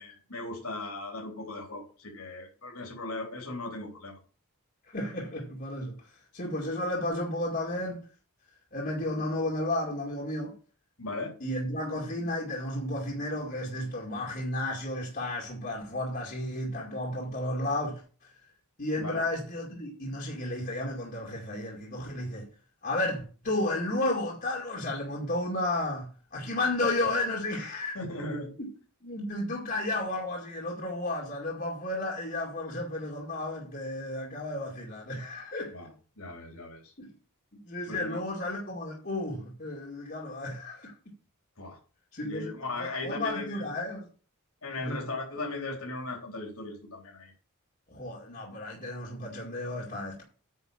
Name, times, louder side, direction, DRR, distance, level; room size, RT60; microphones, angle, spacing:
voice 1, 0.0-4.2 11.0-11.4 19.0-19.2 27.9-28.5 35.7-35.9 36.2-36.9 37.9-38.2 41.6-41.8 42.2-43.7 44.6-47.3, left 2 dB, 75° left, 3.8 m, -37 dB
voice 2, 4.9-6.0 6.3-8.0 8.7-10.5 11.4-18.3 18.8-22.5 22.8-28.0 28.6-28.7 29.0-35.7 37.0-37.1 37.6-40.9 42.1-44.1 44.8-45.1 47.9-50.2, left 1 dB, 40° left, 2.2 m, -33 dB
9.4 x 5.4 x 7.3 m
head